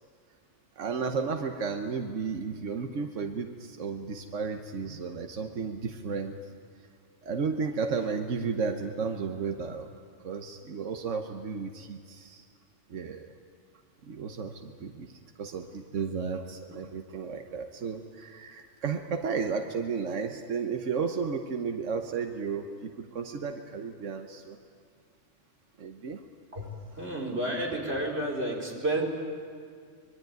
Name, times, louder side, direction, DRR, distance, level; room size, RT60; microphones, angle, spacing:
voice 1, 0.8-6.4 7.2-9.9 10.2-12.4 12.9-13.3 14.0-24.6 25.8-26.2, right 5 dB, 80° right, 5 dB, 1.4 m, -33 dB
voice 2, 26.5-29.0, right 1 dB, 55° right, 0 dB, 4.3 m, -31 dB
25.0 x 22.0 x 9.3 m, 2.1 s
omnidirectional pair, 1.3 m